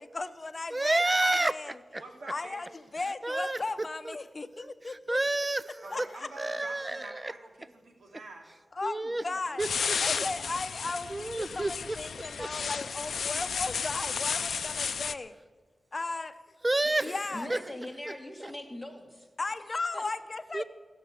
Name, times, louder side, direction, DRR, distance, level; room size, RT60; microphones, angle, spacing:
voice 1, 0.0-1.7 2.3-2.7 2.9-5.2 5.9-6.3 8.7-9.6 10.0-15.3 15.9-16.4 17.0-17.5 19.4-20.6, left 3 dB, 40° left, 10 dB, 0.8 m, -36 dB
voice 2, 0.7-2.0 3.2-4.2 4.6-6.1 6.4-7.3 8.8-9.2 9.6-10.0 11.1-12.0 12.2-12.5 16.6-17.6 18.1-18.2 18.4-18.5 20.5-20.6, right 2 dB, 25° right, 17 dB, 0.4 m, -30 dB
voice 3, 2.0-2.6 5.8-8.5 9.3-9.4, right 2 dB, 85° right, 2 dB, 2.5 m, -47 dB
sound 1, 9.6-15.1, left 6 dB, 85° left, 0.4 m, -33 dB
voice 4, 17.0-19.3 19.9-20.0, left 1 dB, 5° right, 3 dB, 2.2 m, -42 dB
15.5 x 7.2 x 9.6 m, 1.4 s
wide cardioid pair, 85°, 0 cm